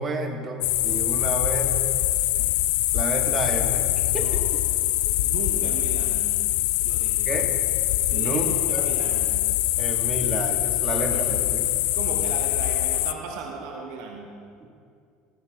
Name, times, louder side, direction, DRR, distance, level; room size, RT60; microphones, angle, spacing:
voice 1, 0.0-1.8 2.4-2.5 2.9-4.3 7.2-7.5 8.1-8.9 9.8-11.8 14.6-14.7, right 2 dB, 25° right, 3 dB, 1.3 m, -30 dB
sound 1, 0.6-13.1, left 17 dB, 60° left, 0.3 m, -24 dB
voice 2, 5.2-6.4 6.8-7.3 8.1-9.4 10.9-11.2 11.9-14.3, right 4 dB, 55° right, 1 dB, 1.0 m, -36 dB
15.0 x 13.0 x 2.3 m, 2.3 s
figure-of-eight pair, 65°, 0 cm